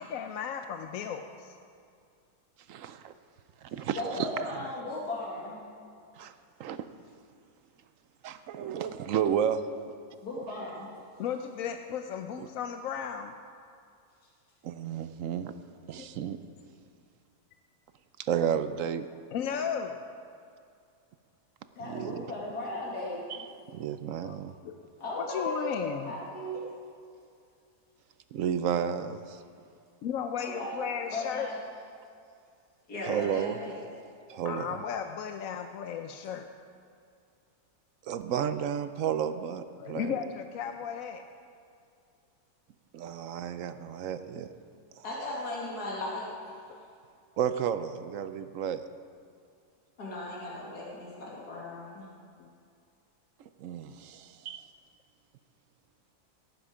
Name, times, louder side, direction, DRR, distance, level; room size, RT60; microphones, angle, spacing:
voice 1, 0.0-1.5 8.8-8.9 11.2-13.3 16.0-16.2 19.3-20.1 24.2-24.9 25.2-26.1 30.0-31.5 34.4-36.5 39.8-41.2 44.3-44.4 51.5-51.6 52.4-52.5, left 7 dB, 70° left, 6 dB, 1.0 m, -35 dB
voice 2, 2.7-3.1 3.6-4.3 6.2-6.3 6.6-6.8 8.2-9.6 12.4-12.5 14.6-15.5 15.9-16.4 18.2-19.1 21.8-22.3 23.3-24.5 28.3-29.4 33.1-33.6 34.3-34.8 38.1-40.1 42.9-44.5 45.0-45.1 47.4-48.8 53.6-54.6, right 8 dB, 65° right, 11 dB, 0.9 m, -32 dB
voice 3, 4.0-5.6 10.2-10.9 21.8-23.2 25.0-26.6 30.4-30.8 31.1-31.6 32.9-33.8 45.0-46.6 50.0-52.1, left 2 dB, 85° left, -5 dB, 2.7 m, -36 dB
17.0 x 9.5 x 5.0 m, 2.4 s
omnidirectional pair, 1.6 m